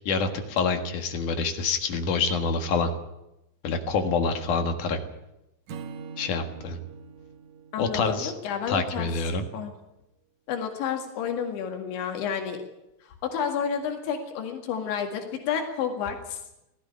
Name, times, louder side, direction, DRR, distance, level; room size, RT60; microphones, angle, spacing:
voice 1, 0.1-2.9 3.6-5.0 6.2-6.8 7.8-8.3 8.7-9.5, left 4 dB, 55° left, 6 dB, 2.7 m, -26 dB
Acoustic guitar / Strum, 5.7-9.0, right 6 dB, 65° right, 1.9 m, -43 dB
voice 2, 7.7-9.1 9.5-9.7 10.5-12.6 13.0-16.4, left 7 dB, 90° left, 4 dB, 4.3 m, -30 dB
18.5 x 15.0 x 9.8 m, 0.90 s
omnidirectional pair, 5.1 m